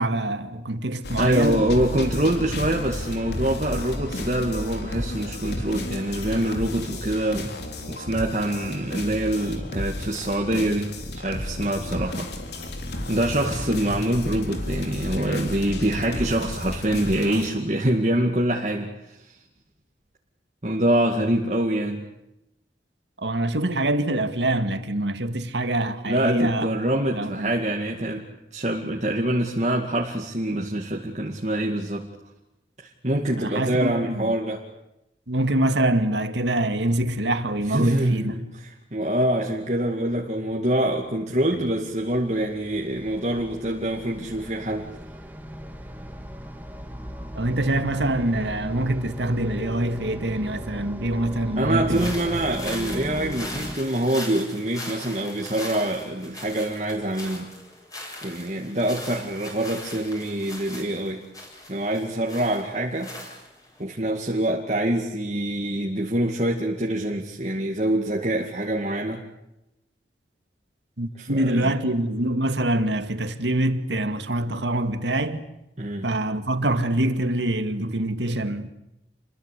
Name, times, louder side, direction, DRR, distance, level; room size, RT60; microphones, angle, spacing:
voice 1, 0.0-1.6 23.2-26.7 27.1-27.5 33.4-34.4 35.3-38.4 41.6-41.7 47.4-52.4 71.0-75.4 76.0-78.7, right 1 dB, 85° right, 2.2 m, -25 dB
sound 1, 1.0-17.5, left 1 dB, 70° left, 4.1 m, -32 dB
voice 2, 1.2-7.5 7.9-12.3 13.1-19.2 20.6-22.1 26.0-28.2 28.5-32.1 33.0-34.6 37.7-44.9 51.6-57.5 58.2-61.2 61.7-63.1 63.8-69.2 71.2-71.7 75.8-76.1, right 1 dB, 40° right, 2.3 m, -25 dB
sound 2, 41.9-53.8, equal, 10° right, 2.0 m, -37 dB
sound 3, 51.9-63.8, left 1 dB, 20° left, 7.7 m, -39 dB
29.0 x 22.0 x 8.4 m
head